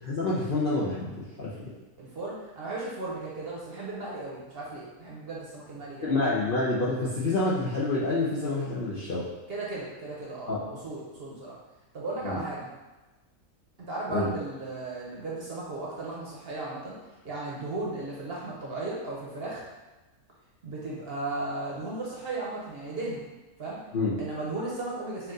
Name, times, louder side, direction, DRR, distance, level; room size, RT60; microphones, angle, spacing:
voice 1, 0.0-1.1 1.4-1.5 6.1-9.3 10.5-10.6 12.2-12.4 14.1-14.3 23.9-24.1, left 2 dB, 50° left, -7 dB, 0.7 m, -27 dB
voice 2, 2.0-6.2 9.5-11.5 11.9-12.7 13.8-17.0 17.2-19.6 20.6-23.2 23.6-23.8 24.2-25.3, right 2 dB, 50° right, -5 dB, 0.9 m, -35 dB
4.5 x 2.5 x 3.8 m, 1.1 s
omnidirectional pair, 1.6 m